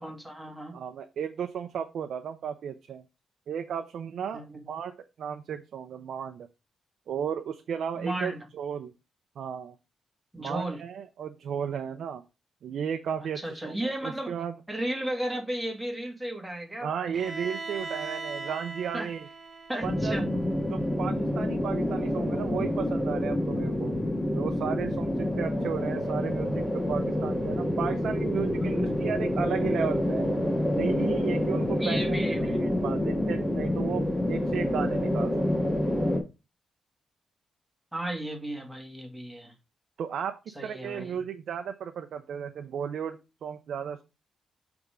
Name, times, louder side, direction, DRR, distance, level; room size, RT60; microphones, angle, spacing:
voice 1, 0.0-0.8 4.3-4.6 8.0-8.4 10.3-10.8 13.2-14.3 14.7-17.1 18.9-19.1 19.7-20.3 31.8-32.6 37.9-39.5 40.6-41.2, right 1 dB, 5° right, 1.8 m, -34 dB
voice 2, 0.7-3.0 3.5-6.5 7.1-8.9 9.4-9.7 10.4-12.2 12.6-14.5 16.8-19.3 19.8-20.2 20.7-23.9 24.3-30.3 30.7-35.3 40.0-44.0, right 8 dB, 75° right, 0.6 m, -34 dB
Bowed string instrument, 17.1-21.0, right 3 dB, 40° right, 0.9 m, -40 dB
sound 1, 19.8-36.2, left 1 dB, 15° left, 2.2 m, -28 dB
6.7 x 3.5 x 4.9 m
wide cardioid pair, 125°, 0 cm